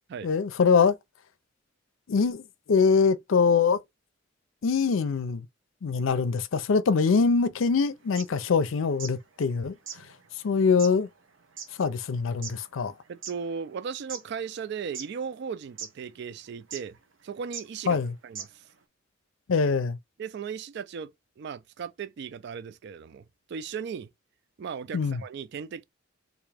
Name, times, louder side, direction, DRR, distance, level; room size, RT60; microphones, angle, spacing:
voice 1, 0.2-1.0 2.1-2.4 2.7-3.8 4.6-5.5 5.8-9.7 10.4-11.1 11.8-12.9 17.9-18.1 19.5-20.0 24.9-25.2, left 5 dB, 80° left, 0.5 m, -23 dB
sound 1, 8.0-9.2 9.5-9.6 9.8-13.4 13.9-14.6 14.9-15.5 15.8-15.9 16.7-17.0 17.5-17.7 18.0-18.1 18.3-18.7, right 7 dB, 80° right, 0.8 m, -40 dB
voice 2, 13.1-17.0 17.2-18.5 20.2-23.2 23.5-24.1 24.6-25.8, right 6 dB, 60° right, 0.3 m, -37 dB
3.5 x 2.6 x 3.3 m
head